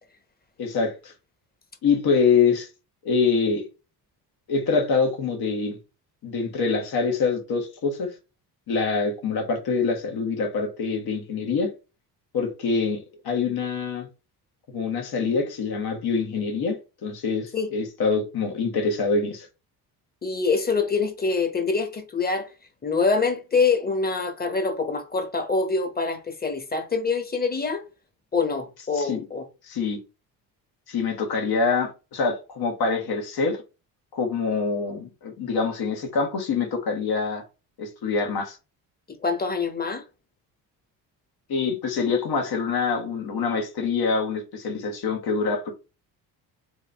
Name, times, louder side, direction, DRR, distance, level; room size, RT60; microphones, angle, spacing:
voice 1, 0.6-1.1 1.8-2.7 3.0-3.6 4.5-5.8 6.2-8.1 8.7-11.7 12.3-14.1 14.7-19.5 28.9-29.2 29.6-30.0 30.9-33.6 34.1-37.4 37.8-38.6 41.5-45.7, left 4 dB, 65° left, 1.6 m, -25 dB
voice 2, 20.2-22.5 22.8-27.8 28.3-29.5 39.1-40.0, left 4 dB, 25° left, 1.1 m, -25 dB
3.5 x 2.7 x 3.4 m
cardioid pair, 80°, 40 cm